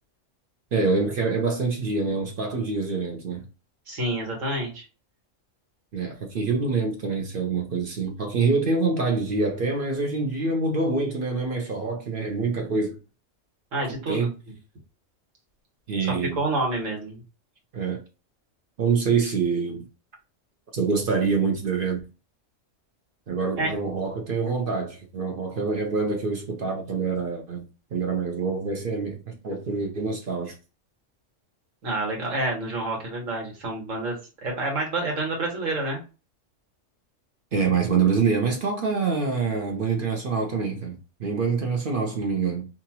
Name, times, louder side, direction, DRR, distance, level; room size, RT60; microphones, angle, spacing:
voice 1, 0.7-3.4 5.9-13.0 14.1-14.3 15.9-16.4 17.7-18.0 18.8-19.8 20.7-22.0 23.3-30.5 37.5-42.7, right 4 dB, 55° right, 0.8 m, -26 dB
voice 2, 3.9-4.8 13.7-14.3 16.4-17.2 23.6-23.7 31.8-34.2 34.4-36.0, right 2 dB, 85° right, 1.5 m, -28 dB
2.9 x 2.4 x 2.7 m
omnidirectional pair, 1.3 m